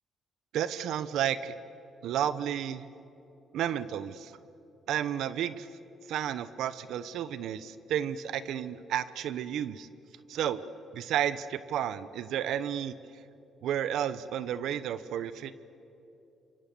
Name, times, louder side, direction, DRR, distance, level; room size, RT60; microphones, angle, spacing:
voice 1, 0.5-1.6 2.0-2.9 3.5-4.3 4.9-5.7 6.1-9.9 10.3-10.6 10.9-12.9 13.6-15.6, right 10 dB, 80° right, 14 dB, 1.0 m, -32 dB
29.0 x 24.5 x 7.0 m, 2.8 s
cardioid pair, 90°, 0 cm